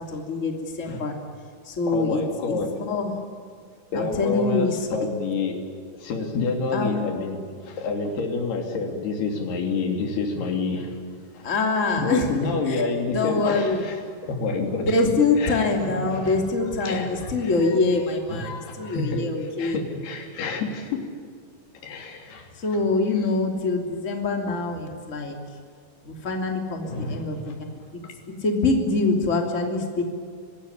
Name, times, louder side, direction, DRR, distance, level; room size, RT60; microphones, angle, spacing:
voice 1, 0.1-0.5 0.8-1.1 1.7-2.2 2.5-3.2 3.9-4.8 6.7-7.0 11.4-12.3 12.7-12.8 13.1-13.8 14.8-18.5 18.8-19.8 22.6-25.4 26.0-27.5 27.9-28.0 28.4-30.0, left 3 dB, 20° left, 2 dB, 2.8 m, -24 dB
voice 2, 1.9-2.7 3.9-5.6 5.9-11.0 11.3-11.5 12.0-15.0 15.4-16.4 16.8-18.0 18.3-21.0 21.7-22.5 23.1-23.3 26.8-27.6 28.0-28.1, left 3 dB, 90° left, 3 dB, 5.1 m, -29 dB
25.0 x 20.5 x 10.0 m, 2.2 s
omnidirectional pair, 4.4 m